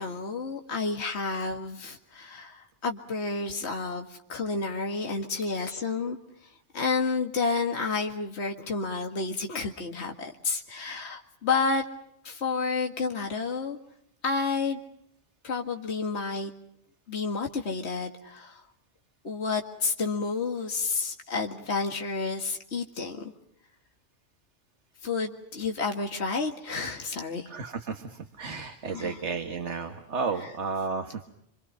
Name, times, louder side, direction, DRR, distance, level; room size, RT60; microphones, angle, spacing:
voice 1, 0.0-11.8 12.2-13.8 14.2-14.8 15.4-16.5 17.1-18.6 19.2-23.3 25.0-27.5 28.4-29.2 30.4-30.5, left 4 dB, 65° left, 2 dB, 2.2 m, -30 dB
voice 2, 27.5-31.3, right 4 dB, 70° right, 7 dB, 1.9 m, -33 dB
28.0 x 25.0 x 5.6 m, 0.74 s
omnidirectional pair, 1.2 m